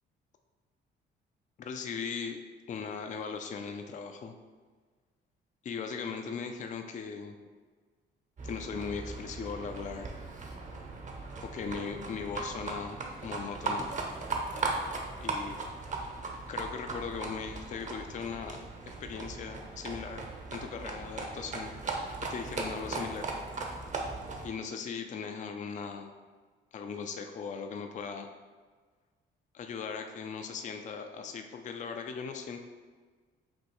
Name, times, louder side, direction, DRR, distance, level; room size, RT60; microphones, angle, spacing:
voice 1, 1.6-2.4 2.7-4.3 5.6-7.4 8.4-10.1 11.4-13.9 15.2-15.6 16.5-18.6 18.9-20.2 20.5-21.7 22.2-23.3 24.4-26.1 26.7-28.3 29.5-32.6, left 6 dB, 40° left, 5 dB, 0.4 m, -38 dB
Livestock farm animals working animals, 8.4-24.5, right 3 dB, 40° right, 0.7 m, -38 dB
5.3 x 2.7 x 3.0 m, 1.5 s
cardioid pair, 90°, 20 cm